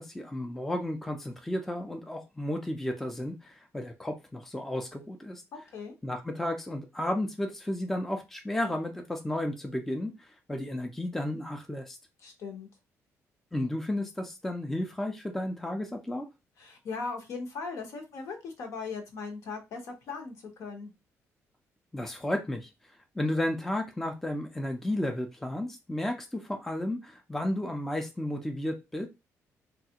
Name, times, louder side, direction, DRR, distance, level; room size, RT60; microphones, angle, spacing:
voice 1, 0.0-5.4 6.0-12.0 13.5-16.3 21.9-22.7 23.2-29.1, left 1 dB, 5° left, 4 dB, 0.4 m, -33 dB
voice 2, 12.2-12.7 16.6-20.3 20.6-20.9, left 4 dB, 65° left, 4 dB, 0.9 m, -38 dB
3.3 x 2.3 x 2.8 m, 0.25 s
cardioid pair, 155°, 6 cm